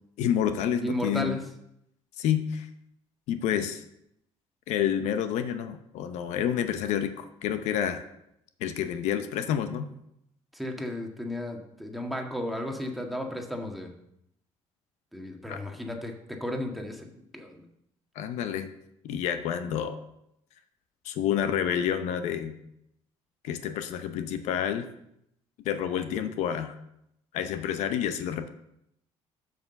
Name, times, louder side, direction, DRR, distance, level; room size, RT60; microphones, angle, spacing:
voice 1, 0.2-1.4 2.2-2.7 3.3-3.8 4.7-8.0 8.6-9.8 15.5-15.6 18.1-18.7 19.0-20.0 21.0-22.6 23.4-24.9 25.6-26.8 27.3-28.5, left 9 dB, 80° left, 9 dB, 0.7 m, -29 dB
voice 2, 0.8-1.4 10.5-13.9 15.1-17.6, left 1 dB, ahead, 2 dB, 1.7 m, -34 dB
6.9 x 6.1 x 6.8 m, 0.78 s
supercardioid pair, 85°, 12 cm